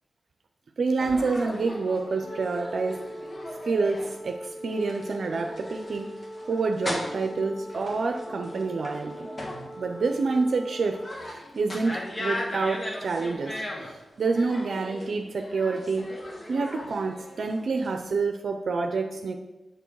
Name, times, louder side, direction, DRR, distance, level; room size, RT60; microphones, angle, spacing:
voice 1, 0.8-3.0 3.7-6.2 6.5-9.3 9.8-11.0 11.5-13.9 14.2-16.1 16.5-19.3, right 4 dB, 70° right, 4 dB, 0.6 m, -28 dB
sound 1, 1.0-18.1, left 1 dB, 40° left, 1.6 m, -38 dB
Wind instrument woodwind instrument, 2.1-11.4, equal, ahead, 0.7 m, -41 dB
6.8 x 6.3 x 4.7 m, 1.0 s
cardioid pair, 50°, 0 cm